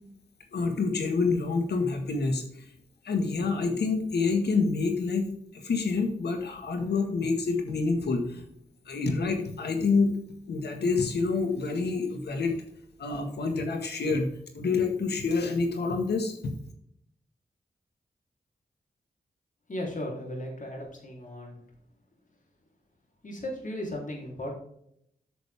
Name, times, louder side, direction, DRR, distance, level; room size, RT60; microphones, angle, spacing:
voice 1, 0.5-2.4 3.0-8.4 8.9-10.2 10.5-12.6 13.0-14.3 14.5-16.5, left 4 dB, 85° left, 5 dB, 1.7 m, -27 dB
voice 2, 19.7-21.6 23.2-24.5, left 1 dB, 50° left, 0 dB, 3.5 m, -36 dB
9.3 x 6.3 x 3.5 m, 0.71 s
cardioid pair, 55°, 17 cm